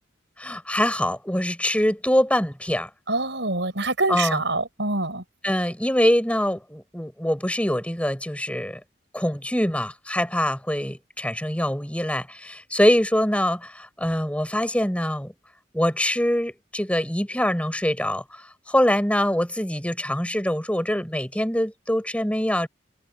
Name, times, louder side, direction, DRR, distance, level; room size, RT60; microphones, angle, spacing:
voice 1, 0.4-2.9 4.1-4.4 5.4-8.8 9.1-15.3 15.7-18.2 18.7-22.7, left 1 dB, 5° left, 6.0 m, -24 dB
voice 2, 3.1-5.2, right 2 dB, 75° right, 5.7 m, -25 dB
head